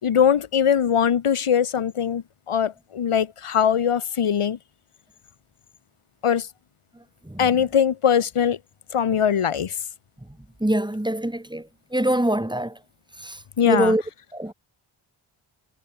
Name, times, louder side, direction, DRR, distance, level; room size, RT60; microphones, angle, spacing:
voice 1, 0.0-4.6 6.2-6.5 7.4-8.6 8.9-9.7 13.6-13.9, left 8 dB, 85° left, 2.9 m, -21 dB
voice 2, 10.6-11.6 11.9-12.7 13.2-13.4 13.7-14.0 14.3-14.5, right 1 dB, 10° right, 4.5 m, -23 dB
wide cardioid pair, 130°, 50 cm